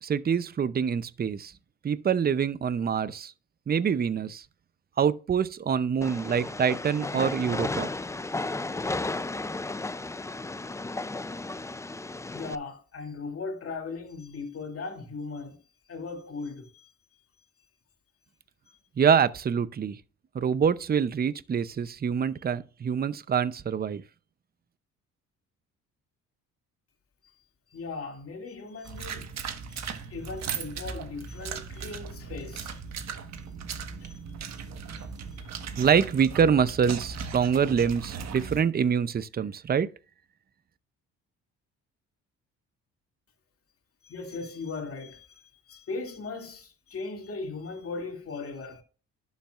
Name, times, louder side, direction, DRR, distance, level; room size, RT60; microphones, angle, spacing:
voice 1, 0.0-1.5 1.8-3.3 3.7-4.4 5.0-7.9 19.0-20.0 20.3-24.0 35.7-39.9, right 7 dB, 30° right, 0.6 m, -25 dB
Train, 6.0-12.5, left 2 dB, 10° left, 0.5 m, -34 dB
voice 2, 12.3-15.6 15.9-16.9 27.7-29.3 29.7-32.8 33.1-33.3 34.0-34.2 34.9-35.1 35.3-35.6 44.0-48.8, left 4 dB, 50° left, 2.5 m, -38 dB
sound 1, 28.9-38.6, right 6 dB, 60° right, 1.4 m, -38 dB
11.5 x 7.4 x 2.5 m
cardioid pair, 90°, 30 cm